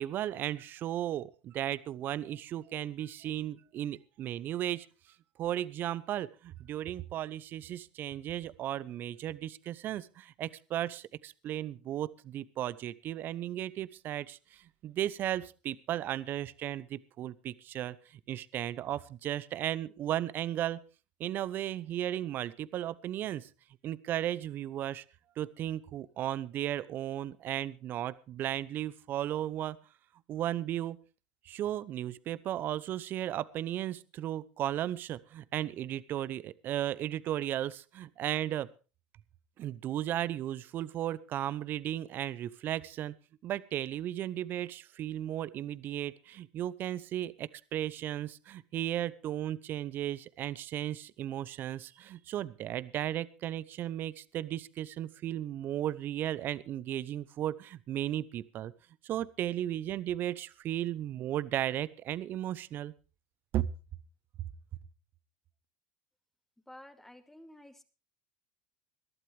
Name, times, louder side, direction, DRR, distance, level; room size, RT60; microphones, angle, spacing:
voice 1, 0.0-4.9 5.4-20.8 21.2-23.5 23.8-25.0 25.4-29.8 30.3-31.0 31.4-38.7 39.6-43.1 43.4-58.7 59.0-62.9 63.5-63.7, right 12 dB, 45° right, 18 dB, 0.8 m, -35 dB
voice 2, 66.7-67.8, left 1 dB, 5° left, 7 dB, 2.4 m, -52 dB
22.0 x 12.0 x 3.4 m, 0.33 s
hypercardioid pair, 85°, 5 cm